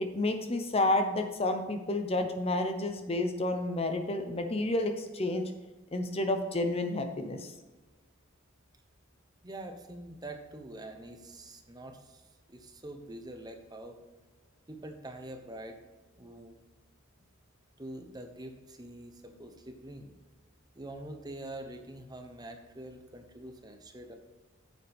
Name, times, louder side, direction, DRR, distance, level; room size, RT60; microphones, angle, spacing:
voice 1, 0.0-5.5 5.9-7.5, left 2 dB, 25° left, 6 dB, 0.7 m, -30 dB
voice 2, 9.4-14.0 14.7-15.8 16.2-16.6 17.8-20.1 20.7-24.1, right 1 dB, 20° right, 5 dB, 0.8 m, -45 dB
9.3 x 7.1 x 3.5 m, 1.2 s
head